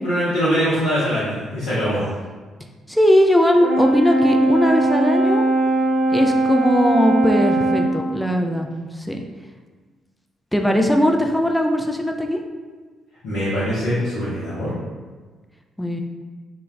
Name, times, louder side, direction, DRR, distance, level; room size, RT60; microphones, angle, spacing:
voice 1, 0.0-2.0 13.2-14.7, equal, 70° left, -11 dB, 0.6 m, -22 dB
voice 2, 2.9-5.5 6.1-9.2 10.5-12.4 15.8-16.0, equal, 5° left, 3 dB, 0.3 m, -19 dB
Brass instrument, 3.6-8.0, right 1 dB, 45° right, 0.6 m, -19 dB
2.2 x 2.1 x 3.2 m, 1.4 s
hypercardioid pair, 45°, 0 cm